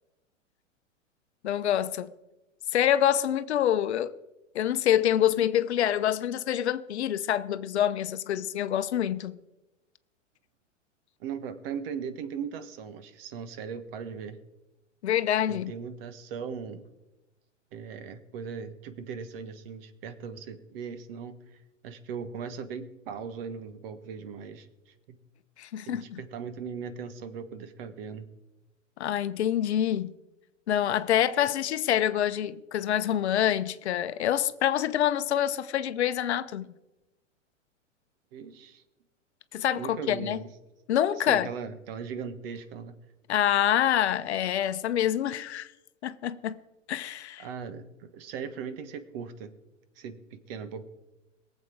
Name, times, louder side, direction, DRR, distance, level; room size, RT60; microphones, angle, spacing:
voice 1, 1.4-2.1 2.7-4.1 4.5-9.4 15.0-15.7 25.6-26.2 29.0-30.2 30.7-36.7 39.5-40.4 40.9-41.5 43.3-45.7 46.0-46.6 46.9-47.5, left 11 dB, 60° left, 0.8 m, -26 dB
voice 2, 11.2-14.4 15.5-16.8 17.7-21.4 21.8-25.2 25.8-28.3 38.3-38.8 39.7-40.5 41.3-42.9 47.4-49.5 50.0-50.2 50.5-50.8, right 6 dB, 50° right, 1.4 m, -38 dB
22.5 x 7.7 x 4.7 m
figure-of-eight pair, 100°, 38 cm